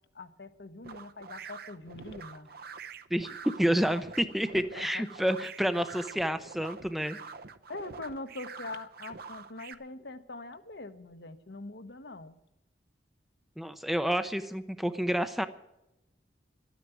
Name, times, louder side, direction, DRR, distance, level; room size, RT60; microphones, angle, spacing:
voice 1, 0.1-2.5 4.7-5.0 7.7-12.4, left 2 dB, 65° left, 9 dB, 1.0 m, -43 dB
sound 1, 0.8-9.7, right 5 dB, 55° right, 0.7 m, -46 dB
voice 2, 3.1-7.2 13.6-15.5, equal, ahead, 10 dB, 0.5 m, -29 dB
12.5 x 9.4 x 9.1 m, 0.90 s
head